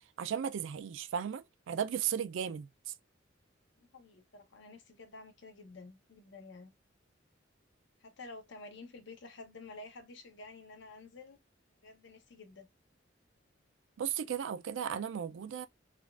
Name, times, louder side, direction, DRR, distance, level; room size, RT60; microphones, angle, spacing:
voice 1, 0.2-2.9 14.0-15.7, right 8 dB, 70° right, 0.3 m, -35 dB
voice 2, 3.8-6.7 8.0-11.4 11.8-12.7, left 3 dB, 65° left, 0.8 m, -51 dB
3.5 x 2.3 x 2.3 m
head